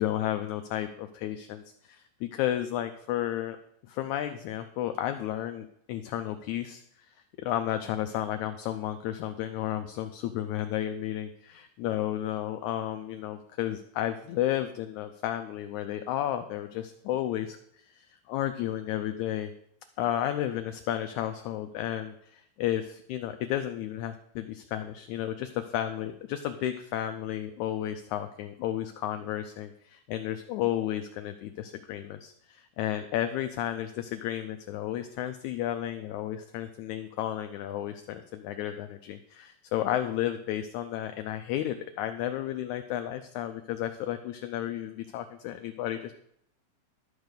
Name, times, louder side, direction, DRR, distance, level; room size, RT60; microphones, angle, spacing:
voice 1, 0.0-3.6 3.8-19.5 20.0-46.1, left 12 dB, 80° left, 8 dB, 1.7 m, -32 dB
12.0 x 6.4 x 5.2 m, 0.72 s
omnidirectional pair, 3.8 m